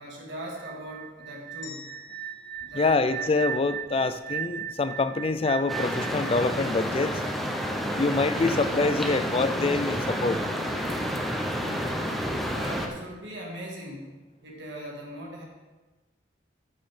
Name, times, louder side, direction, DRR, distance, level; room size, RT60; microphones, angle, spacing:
voice 1, 0.0-1.9 2.6-3.3 8.4-8.5 12.5-15.4, right 1 dB, 75° right, -2 dB, 2.2 m, -40 dB
sound 1, 0.6-7.5, right 9 dB, 50° right, 0.4 m, -37 dB
sound 2, 1.6-3.9, left 6 dB, 70° left, 1.7 m, -49 dB
voice 2, 2.7-7.2 8.0-10.4, left 3 dB, 30° left, 12 dB, 0.4 m, -25 dB
sound 3, 5.7-12.9, equal, ahead, 0.9 m, -29 dB
14.0 x 6.6 x 3.7 m, 1.1 s
head